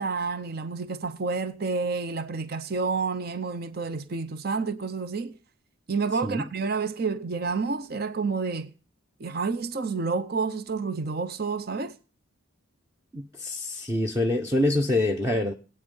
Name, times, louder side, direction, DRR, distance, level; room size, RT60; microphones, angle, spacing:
voice 1, 0.0-5.3 5.9-8.7 9.2-11.9, right 4 dB, 45° right, 0.7 m, -29 dB
voice 2, 13.1-15.5, left 1 dB, 15° right, 0.8 m, -25 dB
20.5 x 8.9 x 5.4 m
head